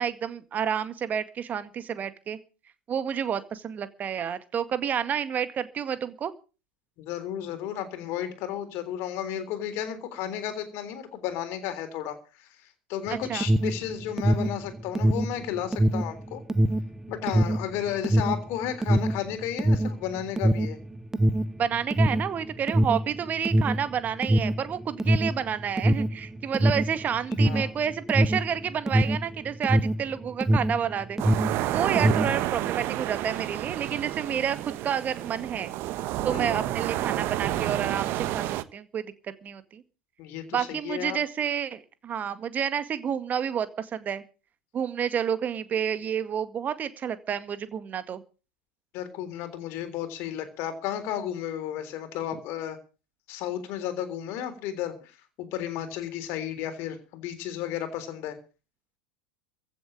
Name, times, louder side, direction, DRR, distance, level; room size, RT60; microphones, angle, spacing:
voice 1, 0.0-2.4 2.9-6.3 13.1-13.5 21.6-31.5 31.7-35.7 36.2-39.8 40.5-44.2 44.7-48.2, right 8 dB, 30° right, 12 dB, 2.0 m, -30 dB
voice 2, 7.0-12.6 12.9-16.4 17.1-20.8 27.4-27.7 36.3-36.7 40.2-41.2 48.9-52.8 53.3-58.4, left 10 dB, 50° left, 8 dB, 3.7 m, -33 dB
Alarm, 13.1-30.9 31.1-32.4, right 1 dB, 10° right, 1.0 m, -24 dB
sound 1, 31.2-38.6, right 14 dB, 45° right, 1.2 m, -30 dB
15.5 x 7.7 x 8.7 m, 0.35 s
figure-of-eight pair, 85°, 5 cm